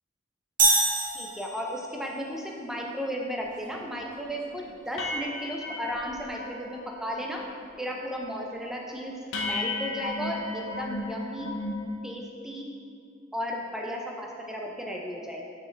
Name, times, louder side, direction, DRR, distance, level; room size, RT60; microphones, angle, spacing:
sound 1, 0.6-2.0, right 3 dB, 40° right, 1.1 m, -24 dB
voice 1, 1.1-7.4 7.8-11.5 12.0-12.7 13.3-15.4, equal, ahead, -1 dB, 0.5 m, -34 dB
sound 2, 3.4-3.5 3.9-4.2 4.5-4.6 5.0-6.8 7.1-7.5 7.8-8.2 8.7-8.8 9.3-11.9, left 2 dB, 65° left, 0.7 m, -35 dB
6.2 x 5.0 x 3.3 m, 2.3 s
head